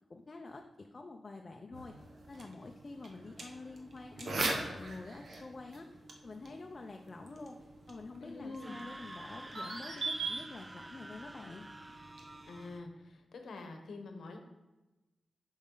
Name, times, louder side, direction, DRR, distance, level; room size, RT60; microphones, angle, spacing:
voice 1, 0.1-1.9 2.3-5.9 6.2-7.6 7.9-11.6, left 3 dB, 40° left, 3 dB, 0.5 m, -47 dB
sound 1, 1.7-12.8, right 2 dB, 65° right, 1.1 m, -42 dB
voice 2, 8.2-8.8 12.5-14.4, left 3 dB, 80° left, 4 dB, 1.0 m, -46 dB
Screaming, 8.5-12.8, right 1 dB, 20° right, 0.3 m, -50 dB
7.1 x 5.4 x 3.9 m, 1.1 s
wide cardioid pair, 90°, 0 cm